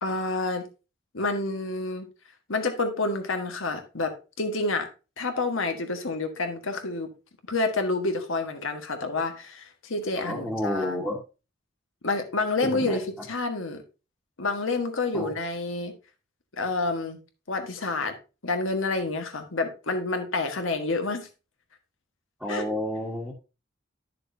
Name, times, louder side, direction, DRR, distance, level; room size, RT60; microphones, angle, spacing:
voice 1, 0.0-0.7 1.1-2.1 2.5-4.9 5.2-7.1 7.5-10.9 12.0-13.8 14.4-15.9 16.5-17.2 17.5-18.1 18.4-21.3 22.5-22.6, left 3 dB, 85° left, 6 dB, 1.5 m, -28 dB
voice 2, 10.1-11.2 12.6-13.0 15.1-15.3 22.4-23.3, left 1 dB, ahead, -4 dB, 1.3 m, -30 dB
10.5 x 6.7 x 2.7 m, 0.31 s
head